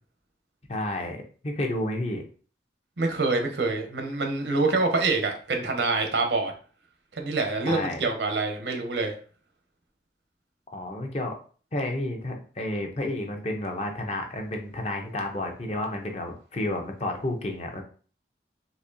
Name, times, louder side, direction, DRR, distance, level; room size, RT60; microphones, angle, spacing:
voice 1, 0.7-2.2 7.6-8.0 10.7-11.4 11.7-17.8, left 1 dB, 35° left, 3 dB, 0.6 m, -31 dB
voice 2, 3.0-6.5 7.1-9.1, right 3 dB, 80° right, 4 dB, 0.8 m, -26 dB
4.1 x 2.7 x 2.6 m, 0.41 s
head